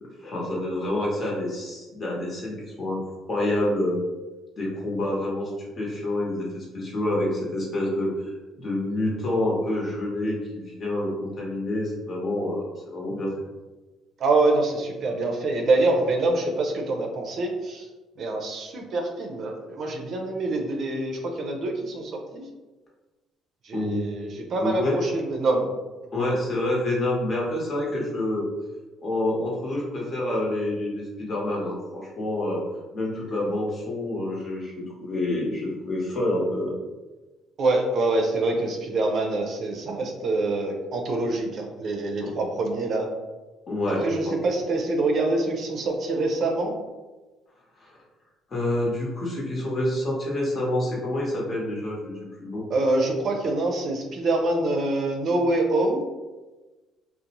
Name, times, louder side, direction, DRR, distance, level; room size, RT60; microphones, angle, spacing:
voice 1, 0.0-3.0 3.3-4.1 4.6-5.5 5.8-8.3 8.6-10.4 10.7-13.3 23.7-24.0 24.6-25.0 26.1-28.5 29.0-32.6 32.9-36.7 42.2-42.3 43.7-44.0 44.3-44.4 47.8-48.0 48.5-52.6, left 1 dB, 40° left, -4 dB, 0.9 m, -27 dB
voice 2, 14.2-17.9 18.2-22.5 23.6-25.7 37.6-43.1 43.9-46.7 52.7-56.0, right 2 dB, 55° right, 2 dB, 0.5 m, -25 dB
2.6 x 2.0 x 2.9 m, 1.2 s
cardioid pair, 100°, 0 cm